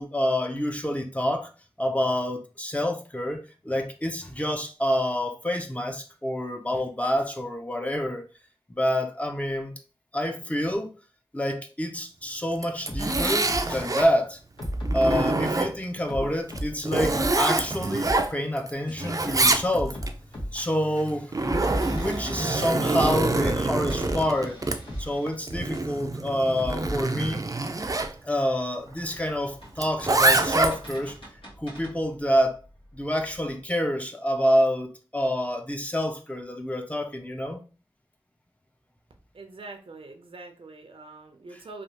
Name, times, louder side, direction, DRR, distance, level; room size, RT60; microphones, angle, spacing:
voice 1, 0.0-1.5 1.8-8.3 8.7-9.7 10.1-10.9 11.3-14.4 14.9-20.0 20.5-24.6 25.0-27.4 28.2-31.1 31.6-32.6 32.9-37.6, equal, 15° left, 0.6 m, -27 dB
Zipper (clothing), 12.5-14.1 14.6-16.0 16.5-18.7 19.0-20.1 21.0-28.1 29.8-31.0, right 2 dB, 40° right, 0.4 m, -26 dB
sound 1, 12.9-13.8 14.6-15.6 16.1-17.4 17.8-18.2 18.9-19.0 19.7-20.6 21.4-22.5 22.9-24.3 24.9-25.1 25.7-25.8 26.6-27.3, equal, 65° left, 1.3 m, -33 dB
sound 2, 21.6-26.5 28.5-33.6, right 1 dB, 80° left, 1.5 m, -47 dB
voice 2, 39.3-41.8, right 3 dB, 85° right, 0.6 m, -44 dB
3.3 x 2.4 x 2.9 m
wide cardioid pair, 55°, 9 cm